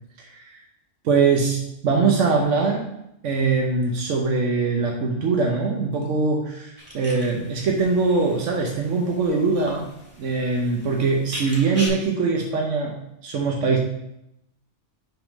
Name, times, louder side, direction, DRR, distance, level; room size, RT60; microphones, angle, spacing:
voice 1, 1.0-1.6 1.8-2.9 3.2-9.9 10.2-12.9 13.2-13.8, right 4 dB, 90° right, 0 dB, 1.1 m, -22 dB
sound 1, 6.8-11.9, equal, 10° right, 1.9 m, -40 dB
5.9 x 3.7 x 5.1 m, 0.83 s
omnidirectional pair, 1.2 m